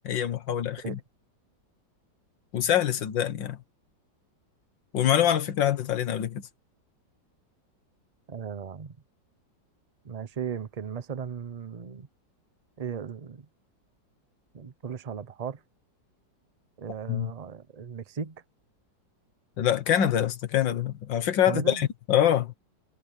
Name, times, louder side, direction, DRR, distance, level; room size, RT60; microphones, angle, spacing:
voice 1, 0.0-1.0 2.5-3.6 4.9-6.5 17.1-17.3 19.6-22.5, left 10 dB, 85° left, 2.0 m, -25 dB
voice 2, 8.3-8.9 10.0-12.1 12.8-13.5 14.5-15.6 16.8-18.4 21.5-21.8, right 7 dB, 40° right, 0.5 m, -36 dB
omnidirectional pair, 2.0 m